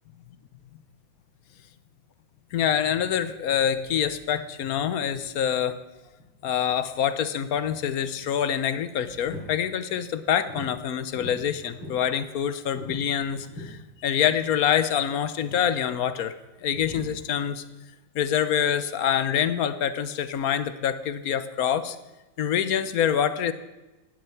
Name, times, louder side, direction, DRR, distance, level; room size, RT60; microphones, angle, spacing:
voice 1, 2.5-5.8 6.4-16.3 16.6-17.6 18.1-22.0 22.4-23.5, left 9 dB, 55° left, 13 dB, 1.1 m, -26 dB
sound 1, 6.2-6.5 7.0-8.3 8.8-9.5 9.9-10.7 11.0-12.0 12.6-13.8 14.2-14.4 14.7-14.9 15.3-15.7 16.6-17.1, left 2 dB, 90° left, 6.2 m, -41 dB
17.0 x 11.5 x 5.8 m, 1.1 s
omnidirectional pair, 2.2 m